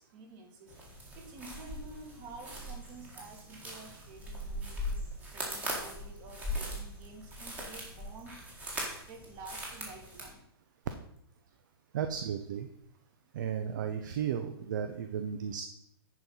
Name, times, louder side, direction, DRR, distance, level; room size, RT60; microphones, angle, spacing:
voice 1, 0.1-8.4 9.1-10.5, right 2 dB, 30° right, 2 dB, 1.9 m, -50 dB
sound 1, 0.7-10.3, equal, 10° right, 1.7 m, -40 dB
voice 2, 11.9-12.7 13.3-15.6, right 8 dB, 50° right, 7 dB, 0.7 m, -34 dB
10.5 x 4.6 x 5.5 m, 0.74 s
hypercardioid pair, 165°, 13 cm